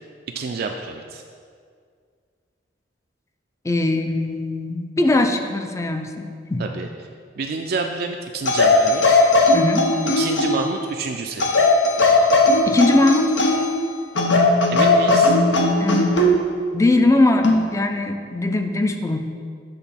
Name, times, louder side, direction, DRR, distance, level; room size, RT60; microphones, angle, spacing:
voice 1, 0.3-1.2 6.6-6.9 7.4-9.2 10.2-11.5 14.7-15.3, right 4 dB, 55° right, 3 dB, 0.4 m, -28 dB
voice 2, 3.6-6.6 9.5-9.9 12.7-13.3 15.8-16.5 16.7-19.2, left 2 dB, 15° left, 6 dB, 0.4 m, -21 dB
sound 1, 8.4-10.7 11.4-13.8 14.2-16.4 17.4-17.7, left 2 dB, 90° left, 0.8 m, -17 dB
8.0 x 3.7 x 5.7 m, 2.1 s
head